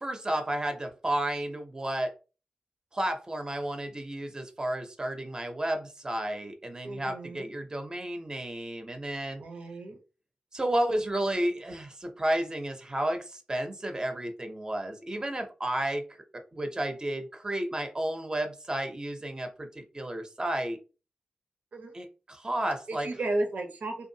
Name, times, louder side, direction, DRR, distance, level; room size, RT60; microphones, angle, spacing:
voice 1, 0.0-2.1 2.9-9.4 10.5-16.0 16.3-20.8 21.9-23.1, right 1 dB, 25° right, 6 dB, 0.6 m, -32 dB
voice 2, 6.8-7.5 9.4-10.0 21.7-21.9 22.9-24.1, right 2 dB, 75° right, 3 dB, 0.7 m, -34 dB
2.6 x 2.4 x 2.7 m, 0.33 s
cardioid pair, 50°, 3 cm